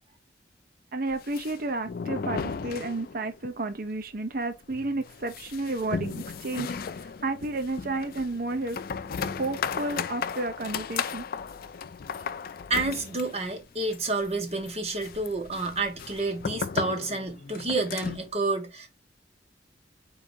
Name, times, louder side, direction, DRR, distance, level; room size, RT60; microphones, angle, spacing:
voice 1, 0.9-8.8 9.4-11.2, right 2 dB, 55° right, 0.7 m, -32 dB
sound 1, 1.1-3.5 3.7-3.8 4.1-4.2 4.7-18.3, left 6 dB, 55° left, 0.4 m, -36 dB
voice 2, 12.7-18.9, right 3 dB, 35° right, 1.5 m, -29 dB
4.8 x 3.6 x 2.7 m
head